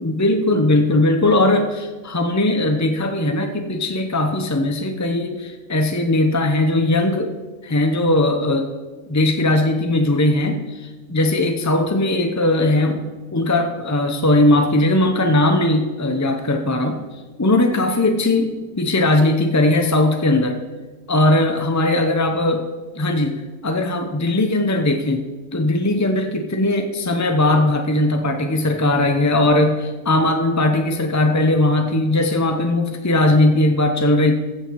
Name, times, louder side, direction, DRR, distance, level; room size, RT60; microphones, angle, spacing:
voice 1, 0.0-7.3 7.6-8.7 9.1-20.6 21.1-22.7 23.0-25.2 25.5-34.3, left 2 dB, 20° left, 5 dB, 0.4 m, -19 dB
15.0 x 7.6 x 4.6 m, 1.3 s
omnidirectional pair, 1.4 m